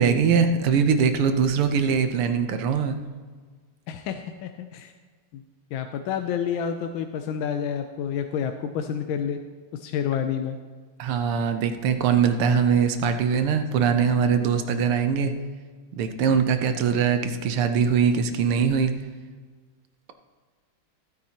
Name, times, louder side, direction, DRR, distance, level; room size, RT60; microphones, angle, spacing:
voice 1, 0.0-3.0 11.0-15.3 15.9-18.9, right 6 dB, 85° right, 7 dB, 1.8 m, -22 dB
voice 2, 3.9-4.9 5.3-5.4 5.7-9.4 9.7-10.6, left 8 dB, 75° left, 6 dB, 1.3 m, -29 dB
15.5 x 9.2 x 2.9 m, 1.5 s
omnidirectional pair, 2.4 m